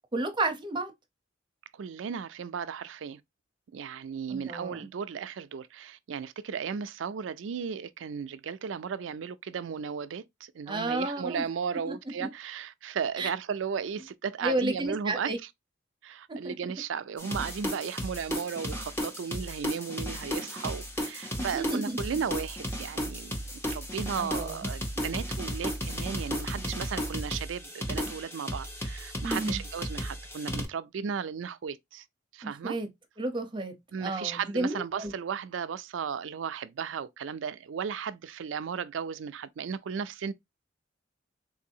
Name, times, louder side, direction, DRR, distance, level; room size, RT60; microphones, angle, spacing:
voice 1, 0.1-0.9 4.3-4.9 10.7-11.4 11.8-12.3 13.2-13.3 14.4-15.4 16.3-16.5 21.4-22.0 24.2-24.7 29.2-29.6 32.4-32.9 33.2-33.7 34.0-35.1, right 2 dB, 25° right, 0.7 m, -32 dB
voice 2, 1.7-3.2 3.7-15.3 16.0-23.4 23.7-32.0 32.3-32.8 33.9-40.3, right 6 dB, 90° right, 0.4 m, -35 dB
sound 1, 17.2-30.7, equal, 15° left, 0.9 m, -34 dB
3.9 x 2.6 x 2.7 m
head